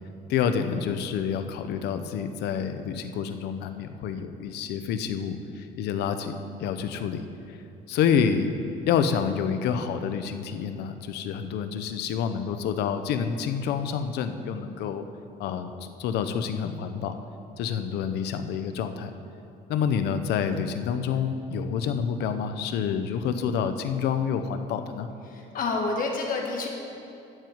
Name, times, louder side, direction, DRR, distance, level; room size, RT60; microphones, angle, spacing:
voice 1, 0.3-7.2 7.9-8.5 8.9-15.0 15.4-17.2 17.6-19.1 19.7-25.1, left 7 dB, 80° left, 9 dB, 0.7 m, -28 dB
voice 2, 25.2-26.7, left 3 dB, 55° left, 1 dB, 1.3 m, -29 dB
12.5 x 4.6 x 7.8 m, 2.7 s
cardioid pair, 110°, 17 cm